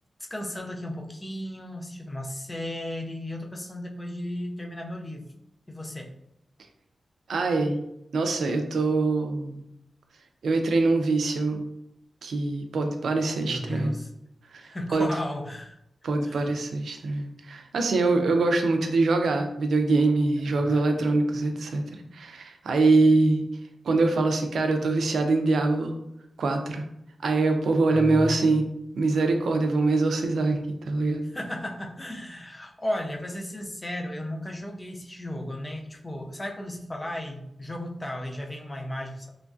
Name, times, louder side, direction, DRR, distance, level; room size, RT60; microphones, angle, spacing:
voice 1, 0.3-5.3 5.7-6.1 13.4-14.1 14.6-15.8 16.2-16.5 20.6-21.0 27.9-28.6 31.3-39.3, left 1 dB, 15° left, 1 dB, 0.4 m, -35 dB
voice 2, 7.3-7.8 8.1-9.6 10.4-11.7 12.2-13.9 14.5-15.1 16.0-23.4 23.8-26.0 26.4-26.8 27.2-28.6 28.9-31.2, right 3 dB, 80° right, 4 dB, 0.4 m, -24 dB
3.0 x 2.5 x 2.3 m, 0.81 s
wide cardioid pair, 145°, 0 cm